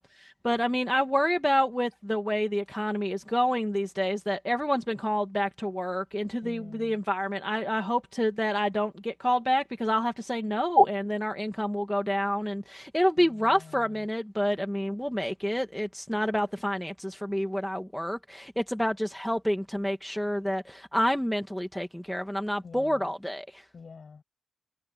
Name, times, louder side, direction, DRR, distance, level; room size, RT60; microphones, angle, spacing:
voice 1, 0.2-23.6, equal, 5° left, 1.7 m, -28 dB
voice 2, 6.4-7.0 13.2-14.1 22.6-23.1 23.7-24.2, left 5 dB, 50° left, 6.6 m, -47 dB
cardioid pair, 95°, 0 cm